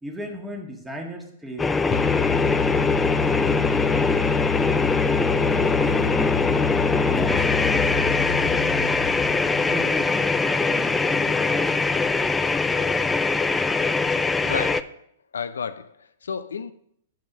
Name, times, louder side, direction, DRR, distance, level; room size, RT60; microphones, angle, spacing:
voice 1, 0.0-1.7 2.1-2.6 5.3-12.0, equal, 5° right, 1.6 m, -36 dB
sound 1, 1.6-14.8, left 4 dB, 10° left, 0.3 m, -22 dB
sound 2, 1.9-9.6, left 7 dB, 25° left, 0.8 m, -28 dB
voice 2, 14.4-15.0 15.3-16.7, left 6 dB, 75° left, 0.4 m, -32 dB
7.3 x 5.6 x 6.0 m
hypercardioid pair, 110°, 0 cm